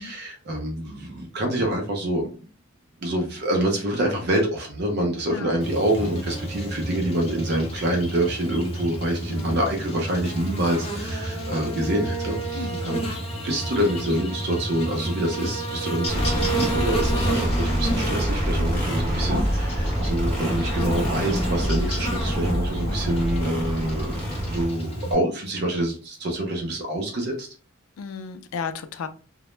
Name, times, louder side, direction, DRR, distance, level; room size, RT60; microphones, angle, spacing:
voice 1, 0.0-2.3 3.0-13.2 13.4-24.2 24.4-27.5, right 1 dB, 50° right, 2 dB, 0.5 m, -26 dB
Buzz, 5.6-25.1, right 1 dB, 30° left, 0.5 m, -30 dB
voice 2, 9.3-9.7 12.5-13.1 19.1-19.4 22.8-23.1 28.0-29.1, left 5 dB, 85° left, 9 dB, 0.3 m, -35 dB
sound 1, 16.1-24.7, equal, 10° left, 1.0 m, -26 dB
sound 2, 18.9-24.3, left 1 dB, 20° right, 0.9 m, -34 dB
2.0 x 2.0 x 3.0 m, 0.38 s
head